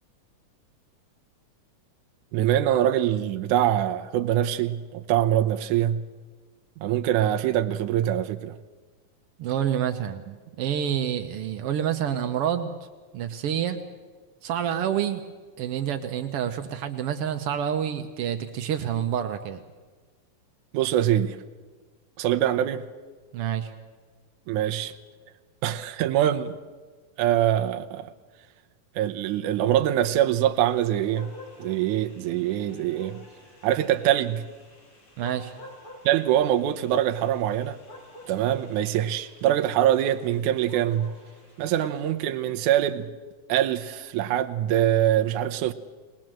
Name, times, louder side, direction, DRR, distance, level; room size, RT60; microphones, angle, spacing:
voice 1, 2.3-6.0 6.8-8.6 20.7-21.4 22.2-22.9 24.5-24.9 25.6-26.6 27.2-28.1 29.0-31.3 31.6-33.2 33.6-34.4 36.1-37.8 38.3-41.1 41.6-43.1 43.5-45.7, right 11 dB, 75° right, 2.1 m, -24 dB
voice 2, 9.4-10.2 10.6-12.7 13.1-13.8 14.4-15.2 15.6-19.6 23.3-23.7 35.2-35.5, right 9 dB, 90° right, 1.3 m, -28 dB
sound 1, 30.5-42.1, left 1 dB, 40° left, 4.5 m, -49 dB
21.0 x 20.0 x 7.6 m
omnidirectional pair, 3.9 m